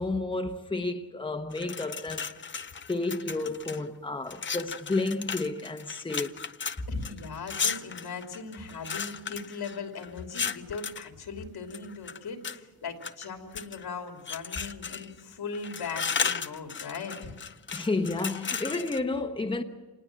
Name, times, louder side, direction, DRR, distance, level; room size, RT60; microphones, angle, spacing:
voice 1, 0.0-2.4 2.9-6.3 17.7-19.6, left 2 dB, 15° left, 1.0 m, -31 dB
sound 1, 1.5-3.8 4.3-11.1 11.7-12.6 13.0-13.8 14.3-15.2 15.5-19.0, left 6 dB, 30° left, 0.6 m, -35 dB
voice 2, 6.9-17.3, left 5 dB, 85° left, 3.0 m, -39 dB
27.0 x 19.5 x 7.6 m
wide cardioid pair, 150°, 37 cm